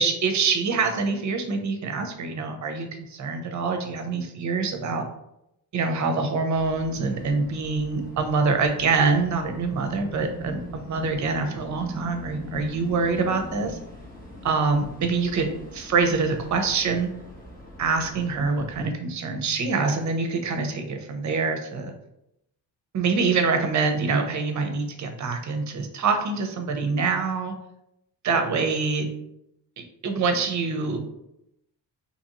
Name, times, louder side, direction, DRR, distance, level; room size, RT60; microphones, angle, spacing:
voice 1, 0.0-5.0 5.7-13.8 14.4-17.1 17.8-21.9 22.9-27.5 28.2-29.1 29.8-31.0, right 4 dB, 45° right, 6 dB, 0.6 m, -25 dB
sound 1, 6.5-18.8, left 1 dB, 20° left, 1.0 m, -42 dB
2.9 x 2.5 x 2.8 m, 0.82 s
supercardioid pair, 70°, 42 cm